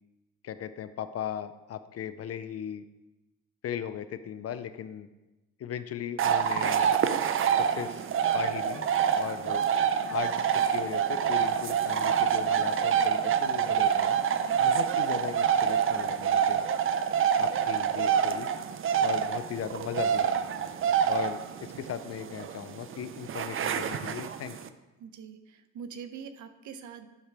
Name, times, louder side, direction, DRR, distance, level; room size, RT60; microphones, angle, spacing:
voice 1, 0.4-2.8 3.6-5.1 5.6-6.9 7.6-8.1 8.3-8.8 9.1-9.6 10.1-14.2 14.6-16.6 17.4-18.5 19.0-20.5 21.1-24.6, left 9 dB, 50° left, 12 dB, 0.5 m, -37 dB
sound 1, 6.2-24.7, right 8 dB, 45° right, 0.5 m, -27 dB
voice 2, 25.0-27.1, right 7 dB, 75° right, 10 dB, 0.8 m, -44 dB
11.0 x 5.9 x 3.4 m, 1.1 s
cardioid pair, 90°, 30 cm